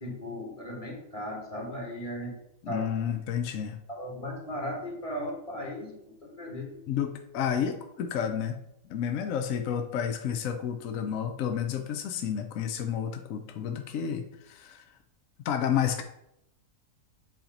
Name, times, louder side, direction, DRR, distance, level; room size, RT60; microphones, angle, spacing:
voice 1, 0.0-2.3 2.7-2.8 3.9-6.8, left 1 dB, 25° left, -1 dB, 1.3 m, -37 dB
voice 2, 2.6-3.8 6.9-8.6 8.9-14.8 15.4-16.0, left 8 dB, 65° left, 5 dB, 0.9 m, -30 dB
7.7 x 2.9 x 5.2 m, 0.79 s
omnidirectional pair, 1.7 m